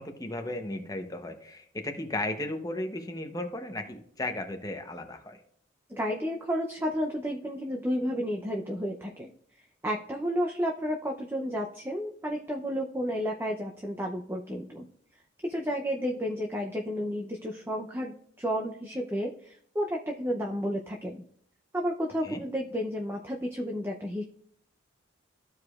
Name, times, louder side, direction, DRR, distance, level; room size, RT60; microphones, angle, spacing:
voice 1, 0.0-5.4 22.2-22.4, left 1 dB, 20° left, 6 dB, 0.8 m, -35 dB
voice 2, 5.9-9.3 9.8-14.9 15.4-21.2 21.7-24.2, equal, 10° right, 0 dB, 0.5 m, -32 dB
14.5 x 4.8 x 2.4 m, 0.68 s
head